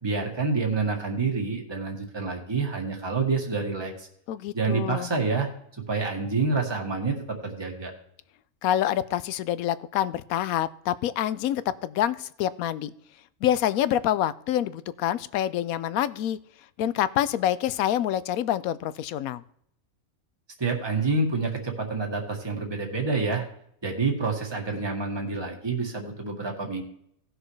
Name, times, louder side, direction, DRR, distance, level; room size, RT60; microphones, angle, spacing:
voice 1, 0.0-4.1 4.5-5.5 5.9-7.9 20.6-23.4 23.8-26.8, right 4 dB, 20° right, 1 dB, 1.7 m, -28 dB
voice 2, 4.3-5.1 8.6-12.9 13.4-16.4 16.8-19.4, left 11 dB, 85° left, 16 dB, 1.0 m, -26 dB
17.5 x 6.3 x 3.2 m, 0.69 s
omnidirectional pair, 1.5 m